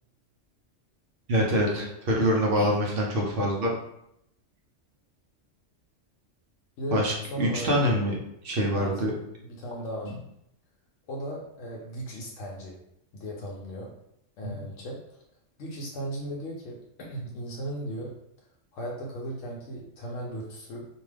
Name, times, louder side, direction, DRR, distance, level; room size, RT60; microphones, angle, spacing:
voice 1, 1.3-3.7 6.9-8.1 8.4-9.1 14.4-14.6, equal, 55° right, -1 dB, 0.7 m, -25 dB
voice 2, 6.8-7.7 8.7-9.0 9.4-10.2 11.1-12.8 13.1-13.9 14.4-15.2 15.6-18.1 18.7-20.9, equal, 80° left, -2 dB, 0.9 m, -36 dB
2.6 x 2.3 x 3.2 m, 0.77 s
omnidirectional pair, 1.3 m